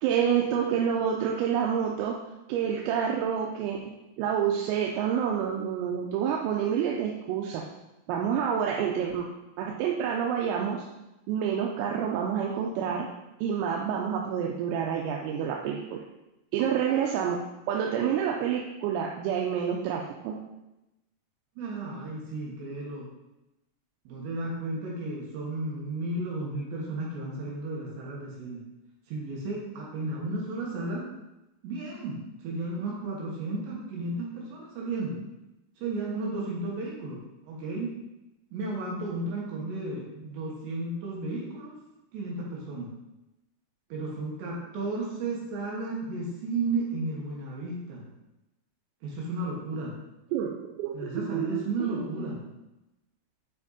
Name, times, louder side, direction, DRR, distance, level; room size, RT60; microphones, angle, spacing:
voice 1, 0.0-2.2 2.5-3.8 4.2-7.7 8.1-9.3 9.6-10.9 11.3-13.1 13.4-16.0 16.5-17.4 17.7-20.4 50.3-52.3, right 8 dB, 85° right, -1 dB, 3.4 m, -28 dB
voice 2, 21.6-23.1 24.1-28.6 29.1-31.0 31.6-32.2 32.4-35.2 35.8-37.2 37.5-37.9 38.5-41.7 42.1-42.9 43.9-48.1 49.0-49.9 50.9-52.5, right 2 dB, 70° right, -4 dB, 3.1 m, -33 dB
9.9 x 4.4 x 4.1 m, 0.94 s
omnidirectional pair, 6.0 m